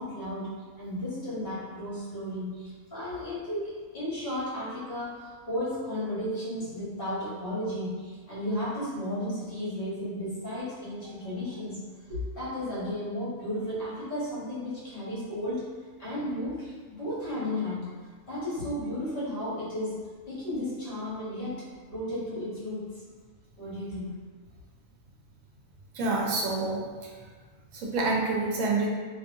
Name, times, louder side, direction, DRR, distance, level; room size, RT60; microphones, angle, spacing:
voice 1, 0.0-11.8 12.1-15.6 16.0-17.8 18.3-20.0 20.3-21.6 21.9-22.9 23.6-24.1, left 1 dB, 45° left, -9 dB, 1.3 m, -34 dB
voice 2, 25.9-27.1 27.7-28.9, right 3 dB, 75° right, -2 dB, 0.9 m, -28 dB
2.7 x 2.5 x 2.5 m, 1.5 s
omnidirectional pair, 1.4 m